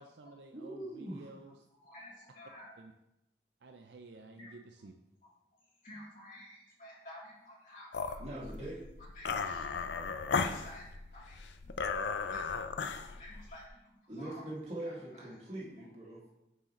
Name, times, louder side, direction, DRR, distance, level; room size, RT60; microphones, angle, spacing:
voice 1, 0.0-1.5 2.8-2.9 3.6-4.9, right 3 dB, 75° right, 5 dB, 0.5 m, -52 dB
voice 2, 0.5-1.3 8.2-8.8 14.1-16.2, right 1 dB, 35° right, -5 dB, 2.1 m, -42 dB
voice 3, 1.8-2.8 4.4-4.5 5.8-8.2 9.1-11.5 12.2-14.5 14.8-15.4 15.8-15.9, left 1 dB, 45° left, -6 dB, 2.9 m, -52 dB
sound 1, 7.9-13.7, left 5 dB, 75° left, 0.5 m, -36 dB
7.6 x 6.6 x 3.1 m, 0.89 s
head